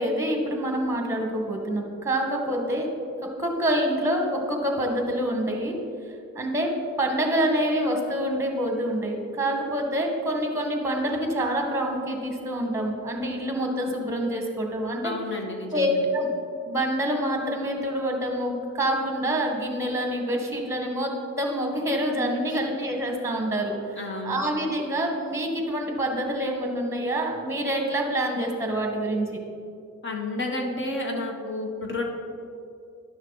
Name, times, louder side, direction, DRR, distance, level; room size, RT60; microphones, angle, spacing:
voice 1, 0.0-2.9 3.4-5.8 6.3-6.7 7.0-15.1 15.7-16.3 16.7-23.7 24.2-29.4, right 1 dB, 10° right, 2 dB, 1.7 m, -26 dB
voice 2, 15.0-16.0 22.2-22.6 24.0-24.4 30.0-32.0, left 2 dB, 40° left, 2 dB, 1.5 m, -31 dB
10.5 x 6.3 x 4.1 m, 2.4 s
cardioid pair, 90°, 30 cm